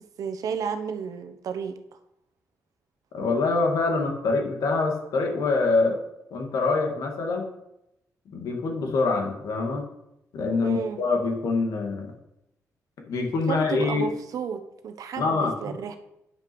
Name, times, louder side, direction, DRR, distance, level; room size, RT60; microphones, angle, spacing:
voice 1, 0.2-1.8 10.6-11.0 13.5-16.0, right 7 dB, 75° right, 8 dB, 1.0 m, -32 dB
voice 2, 3.1-6.0 6.3-7.5 8.3-9.9 10.3-12.1 13.1-14.1 15.2-15.8, left 3 dB, 80° left, 2 dB, 2.3 m, -25 dB
9.7 x 6.0 x 6.1 m, 0.83 s
cardioid pair, 115°, 6 cm